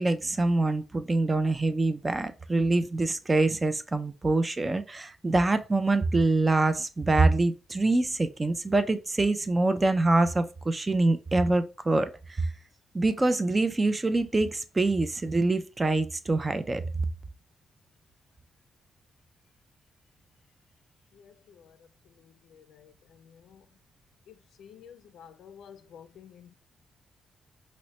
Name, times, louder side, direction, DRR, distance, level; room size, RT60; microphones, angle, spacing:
voice 1, 0.0-12.5 12.9-16.8, right 2 dB, 20° right, 0.3 m, -25 dB
voice 2, 24.6-26.5, left 8 dB, 85° left, 0.3 m, -49 dB
4.0 x 2.0 x 3.0 m
cardioid pair, 135°, 0 cm